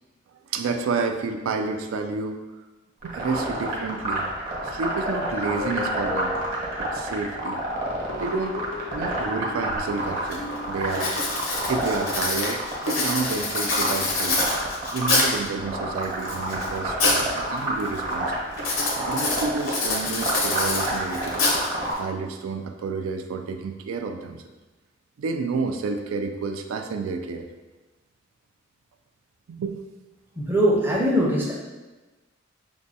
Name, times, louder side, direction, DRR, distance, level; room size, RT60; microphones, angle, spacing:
voice 1, 0.5-2.4 3.0-4.3 4.6-6.4 6.8-7.6 8.2-8.6 8.9-11.3 11.7-14.4 14.9-18.3 19.0-21.5 22.0-24.4 25.2-27.5 29.5-29.8, right 4 dB, 85° right, 5 dB, 0.3 m, -30 dB
sound 1, 3.0-21.9, right 1 dB, 45° right, 0.9 m, -29 dB
sound 2, 5.1-7.3 8.1-11.2, left 3 dB, 55° left, 0.5 m, -37 dB
Writing, 9.8-9.9 10.3-10.6 10.9-15.5 16.0-17.3 17.6-18.0 18.6-22.0, left 2 dB, 90° left, 0.8 m, -26 dB
voice 2, 30.4-31.6, equal, 10° right, -3 dB, 0.5 m, -21 dB
6.0 x 2.2 x 2.7 m, 1.2 s
head